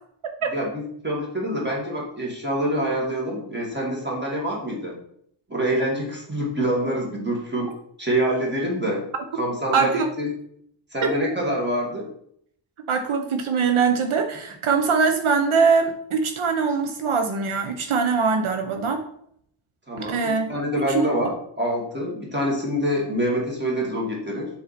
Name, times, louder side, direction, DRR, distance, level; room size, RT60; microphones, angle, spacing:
voice 1, 0.5-5.0 5.5-7.7 8.0-9.1 9.3-10.3 10.9-12.1 19.9-24.5, equal, 20° right, -3 dB, 2.1 m, -26 dB
voice 2, 9.7-10.1 11.0-11.1 12.9-19.0 20.0-20.5 20.9-21.1, right 5 dB, 80° right, 5 dB, 0.9 m, -22 dB
7.1 x 4.7 x 4.1 m, 0.68 s
wide cardioid pair, 170°, 48 cm